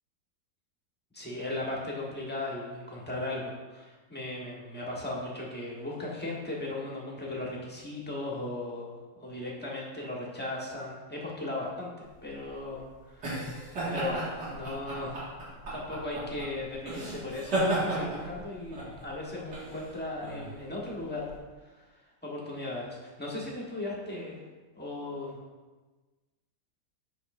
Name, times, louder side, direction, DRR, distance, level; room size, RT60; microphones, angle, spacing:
voice 1, 1.1-13.6 13.9-15.2 15.7-21.9 22.2-24.4 24.7-25.4, left 2 dB, 5° left, -4 dB, 1.1 m, -37 dB
sound 1, 12.2-21.4, right 1 dB, 80° right, 2.6 m, -34 dB
7.9 x 6.1 x 2.6 m, 1.3 s
omnidirectional pair, 1.8 m